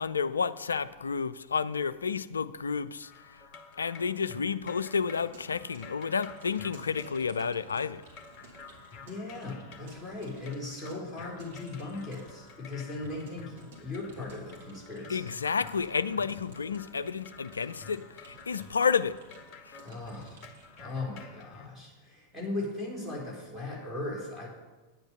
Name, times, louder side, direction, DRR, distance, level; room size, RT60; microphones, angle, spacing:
voice 1, 0.0-3.1 3.8-8.0 15.1-19.2, left 6 dB, 75° left, 0.4 m, -30 dB
sound 1, 3.0-21.7, left 5 dB, 35° left, 1.1 m, -51 dB
Keyboard (musical) / Computer keyboard, 4.9-20.9, right 3 dB, 55° right, 2.7 m, -55 dB
voice 2, 9.0-15.3 19.8-20.4 20.8-24.5, left 2 dB, 5° left, 3.7 m, -38 dB
9.4 x 8.0 x 5.6 m
figure-of-eight pair, 90°, 0 cm